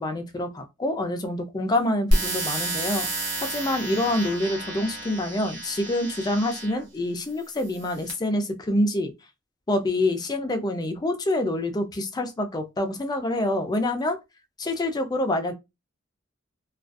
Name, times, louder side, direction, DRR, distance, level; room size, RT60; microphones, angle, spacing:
voice 1, 0.0-9.1 9.7-14.2 14.6-15.5, left 1 dB, 20° left, 0.4 m, -26 dB
sound 1, 2.1-6.8 7.5-8.1, right 1 dB, 65° right, 1.0 m, -29 dB
2.4 x 2.3 x 2.3 m
head